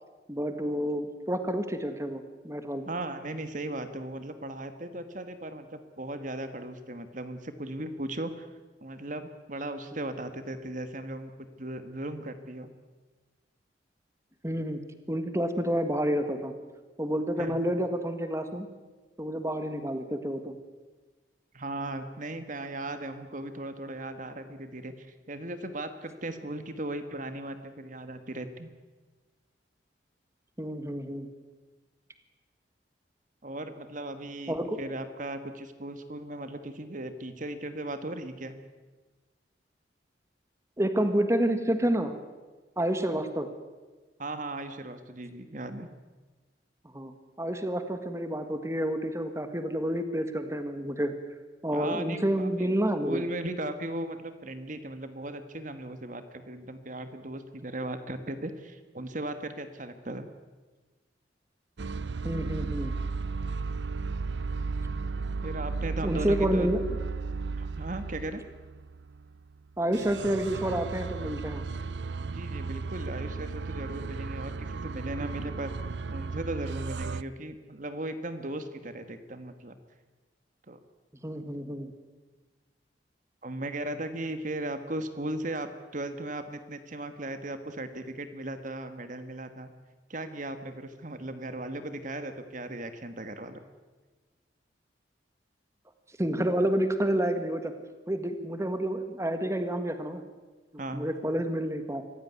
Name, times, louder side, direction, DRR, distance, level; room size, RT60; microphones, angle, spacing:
voice 1, 0.3-2.9 14.4-14.8 15.1-16.5 17.0-18.7 19.2-20.5 30.6-31.3 34.5-34.8 40.8-42.1 42.8-43.5 46.9-51.1 51.6-53.2 62.2-62.9 66.0-66.8 69.8-71.6 81.2-81.9 96.2-97.7 98.1-100.2 100.9-102.0, right 1 dB, 15° right, 8 dB, 1.6 m, -29 dB
voice 2, 2.8-8.5 8.8-12.7 17.4-17.6 21.5-28.7 33.4-38.6 44.2-45.9 51.7-52.7 53.0-60.3 65.4-66.7 67.5-68.4 72.2-75.7 76.1-79.8 80.7-80.8 83.4-89.7 90.1-93.6 100.8-101.1, right 1 dB, 45° right, 9 dB, 1.6 m, -37 dB
sound 1, 61.8-69.5 69.9-77.2, right 4 dB, 75° right, 0.6 m, -35 dB
25.0 x 16.0 x 9.5 m, 1.3 s
head